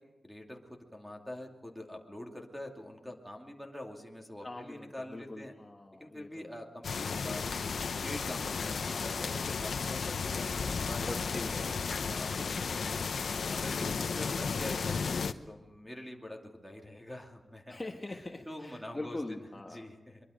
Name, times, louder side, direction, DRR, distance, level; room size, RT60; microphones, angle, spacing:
voice 1, 0.2-5.5 6.0-7.4 8.0-13.0 13.5-17.8 18.5-19.4 19.7-20.2, left 1 dB, ahead, 2 dB, 2.7 m, -45 dB
voice 2, 4.4-6.5 11.1-13.0 13.7-14.0 17.7-19.9, left 2 dB, 20° left, 1 dB, 1.5 m, -43 dB
sound 1, 6.8-15.3, left 5 dB, 70° left, 0.8 m, -34 dB
23.0 x 23.0 x 5.2 m, 1.1 s
wide cardioid pair, 135°, 0 cm